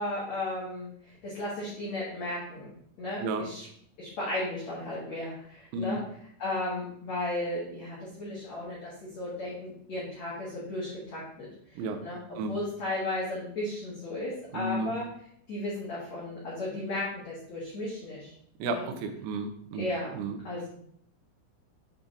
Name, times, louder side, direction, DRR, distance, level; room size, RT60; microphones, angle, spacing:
voice 1, 0.0-2.7 3.0-3.6 4.0-6.0 6.4-15.0 15.5-18.3 18.6-18.9 19.8-20.1 20.4-20.7, left 1 dB, 70° left, -7 dB, 1.6 m, -35 dB
voice 2, 14.5-14.9 18.6-19.8 20.1-20.4, right 3 dB, 85° right, 6 dB, 3.5 m, -32 dB
8.6 x 3.9 x 3.8 m, 0.67 s
omnidirectional pair, 5.9 m